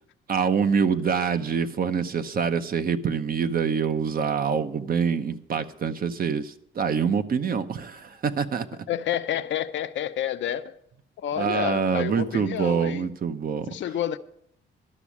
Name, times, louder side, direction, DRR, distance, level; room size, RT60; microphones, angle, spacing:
voice 1, 0.3-8.7 11.4-13.7, right 6 dB, 50° right, 0.8 m, -25 dB
voice 2, 8.9-10.8 11.2-13.1 13.7-14.2, left 10 dB, 70° left, 0.7 m, -29 dB
12.0 x 6.2 x 8.4 m
cardioid pair, 90°, 20 cm